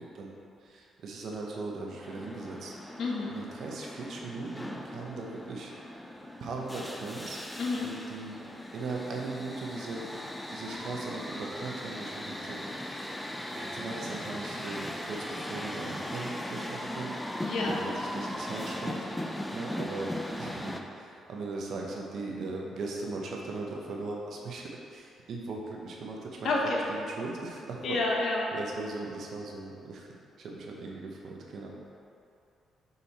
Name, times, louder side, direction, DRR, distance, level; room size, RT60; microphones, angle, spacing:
voice 1, 0.0-3.0 3.3-6.0 6.4-7.5 7.8-12.6 13.5-17.3 17.6-20.1 20.4-28.0 28.5-30.1 30.4-31.7, right 3 dB, 65° right, -1 dB, 0.9 m, -39 dB
sound 1, 2.0-20.8, left 1 dB, 10° left, 0.5 m, -38 dB
voice 2, 3.0-3.4 7.6-7.9 17.4-17.7 26.4-26.8 27.8-28.4, left 3 dB, 60° left, -2 dB, 1.1 m, -29 dB
5.5 x 4.3 x 4.2 m, 2.6 s
cardioid pair, 90°, 0 cm